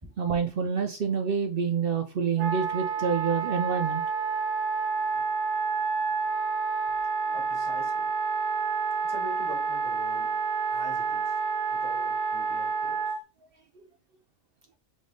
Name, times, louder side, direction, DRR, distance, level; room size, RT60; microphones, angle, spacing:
voice 1, 0.2-4.0, right 6 dB, 65° right, 0.6 m, -27 dB
Wind instrument woodwind instrument, 2.4-13.2, right 5 dB, 90° right, 1.1 m, -29 dB
voice 2, 7.3-8.2 9.0-11.4 11.7-13.2, equal, 15° right, 1.5 m, -44 dB
3.6 x 3.5 x 3.8 m
omnidirectional pair, 1.4 m